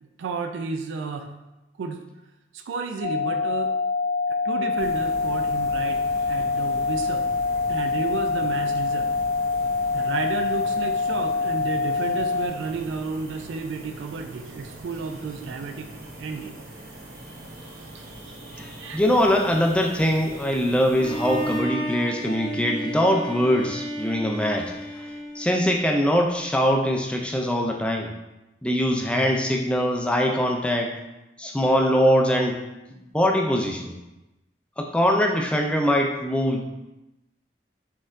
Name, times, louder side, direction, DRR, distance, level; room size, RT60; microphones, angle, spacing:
voice 1, 0.0-1.3 1.8-2.1 2.5-3.7 4.3-7.3 7.7-9.1 9.9-15.9 16.2-16.5 17.9-18.1 18.8-19.0, right 4 dB, 80° right, 5 dB, 0.3 m, -32 dB
sound 1, 3.0-12.5, left 4 dB, 55° left, 0.6 m, -25 dB
sound 2, 4.8-21.6, right 1 dB, 50° right, 1.0 m, -42 dB
voice 2, 18.6-24.9 25.3-28.1 28.6-30.9 31.4-32.6 33.1-34.0 34.8-36.6, equal, 5° left, 1 dB, 0.3 m, -22 dB
Bowed string instrument, 21.0-26.0, equal, 20° left, 0.9 m, -32 dB
4.1 x 3.9 x 2.5 m, 1.0 s
head